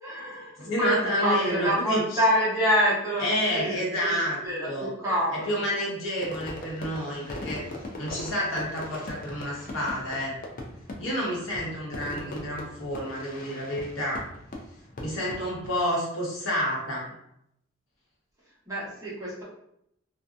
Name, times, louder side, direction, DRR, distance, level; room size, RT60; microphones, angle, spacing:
voice 1, 0.0-5.5 18.7-19.4, equal, 15° right, -7 dB, 0.9 m, -27 dB
voice 2, 0.6-2.2 3.2-4.4 4.7-4.9 5.3-7.7 8.0-10.3 11.0-14.3 15.0-17.1, equal, 75° left, -5 dB, 1.0 m, -29 dB
Fireworks, 6.2-15.7, left 1 dB, 40° left, 0.4 m, -40 dB
2.7 x 2.1 x 2.3 m, 0.75 s
head